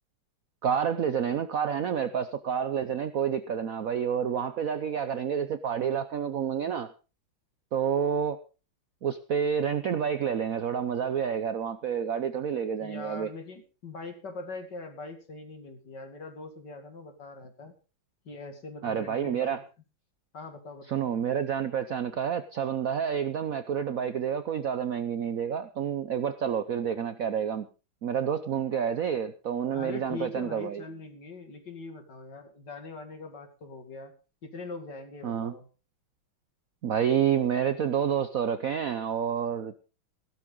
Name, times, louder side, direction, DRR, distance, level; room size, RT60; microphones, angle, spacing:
voice 1, 0.6-6.9 7.7-8.4 9.0-13.3 18.8-19.6 20.9-27.7 28.0-30.8 35.2-35.5 36.8-39.7, right 8 dB, 60° right, 11 dB, 0.9 m, -29 dB
voice 2, 12.6-17.7 18.2-19.6 20.3-21.1 29.7-34.1 34.4-35.7, left 3 dB, 55° left, 6 dB, 2.8 m, -42 dB
16.0 x 12.5 x 3.9 m, 0.33 s
omnidirectional pair, 2.3 m